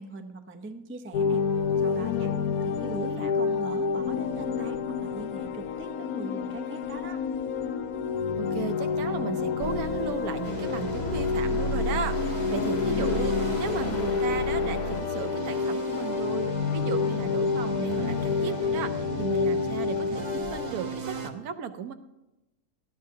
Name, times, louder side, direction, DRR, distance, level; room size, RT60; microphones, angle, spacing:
voice 1, 0.0-1.4 1.8-2.3 2.6-7.2, right 2 dB, 15° right, 6 dB, 0.4 m, -41 dB
sound 1, 1.1-20.7, left 6 dB, 75° left, 1.2 m, -29 dB
voice 2, 2.6-3.8 8.4-21.9, right 6 dB, 75° right, 9 dB, 1.2 m, -35 dB
sound 2, 9.6-15.0, left 3 dB, 60° left, 0.7 m, -33 dB
sound 3, 10.4-21.3, right 4 dB, 40° right, 0.7 m, -36 dB
18.5 x 12.5 x 2.8 m, 0.99 s
omnidirectional pair, 1.6 m